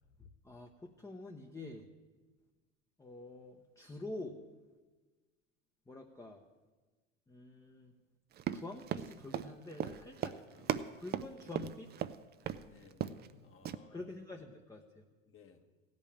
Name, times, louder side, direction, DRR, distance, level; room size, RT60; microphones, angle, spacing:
voice 1, 0.4-1.9 3.0-4.4 5.9-6.4 7.3-7.9 8.5-10.3 11.0-11.9 13.9-15.0, left 2 dB, 10° left, 3 dB, 0.8 m, -47 dB
Run, 8.4-12.1 12.5-12.6 12.9-13.3 13.6-13.8, right 10 dB, 25° right, 0.5 m, -37 dB
voice 2, 10.3-10.9 12.6-14.0 15.3-15.6, left 5 dB, 35° left, 6 dB, 1.3 m, -61 dB
15.5 x 5.4 x 8.7 m, 1.3 s
hypercardioid pair, 90°, 38 cm